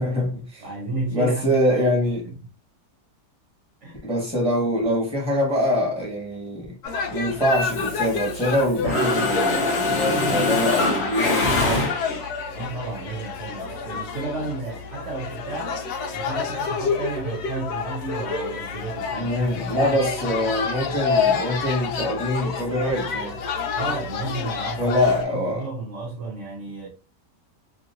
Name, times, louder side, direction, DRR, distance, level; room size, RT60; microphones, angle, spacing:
voice 1, 0.0-0.6 1.1-2.2 4.0-6.8 7.1-11.9 19.1-23.4 24.8-25.7, equal, 5° right, 1.3 m, -24 dB
voice 2, 0.6-2.4 3.8-4.1 12.5-15.8 16.1-20.6 23.7-26.9, right 3 dB, 55° right, 0.9 m, -33 dB
sound 1, 6.8-25.2, left 5 dB, 75° left, 1.1 m, -29 dB
Mechanisms, 7.6-8.5 8.8-12.4, left 2 dB, 55° left, 0.8 m, -23 dB
2.9 x 2.8 x 2.6 m
omnidirectional pair, 1.8 m